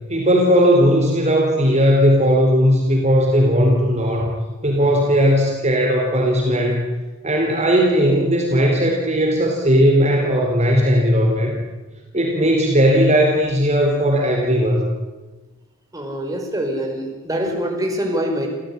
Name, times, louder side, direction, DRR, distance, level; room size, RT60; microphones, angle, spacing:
voice 1, 0.1-4.3 4.6-6.9 7.2-11.6 12.1-14.9, equal, 35° right, 0 dB, 4.0 m, -17 dB
voice 2, 15.9-18.5, equal, 15° right, 1 dB, 5.0 m, -24 dB
28.5 x 15.5 x 9.9 m, 1.2 s
head